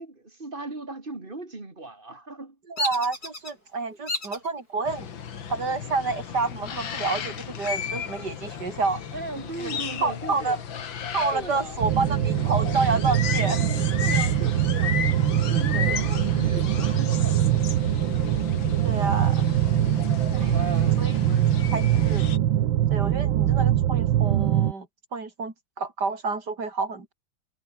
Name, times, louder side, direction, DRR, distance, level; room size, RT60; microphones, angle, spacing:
voice 1, 0.0-2.6 9.1-10.6 11.3-11.8 14.0-14.9 15.5-17.7 20.5-21.5, right 2 dB, 25° right, 3.1 m, -38 dB
voice 2, 2.7-5.1 5.5-9.0 9.6-10.6 11.1-13.8 15.7-16.2 16.6-16.9 18.8-19.5 20.3-20.6 21.0-21.2 21.7-22.3 22.9-24.9 25.1-27.1, right 4 dB, 55° right, 4.6 m, -29 dB
Bird vocalization bird call bird song, 2.8-3.5 4.1-4.5 5.1-5.6 6.7-7.5 7.9-8.0 8.4-9.8, left 2 dB, 50° left, 8.6 m, -34 dB
sound 1, 4.8-22.4, left 8 dB, 75° left, 2.5 m, -34 dB
sound 2, 11.8-24.7, right 11 dB, 80° right, 1.8 m, -23 dB
omnidirectional pair, 2.1 m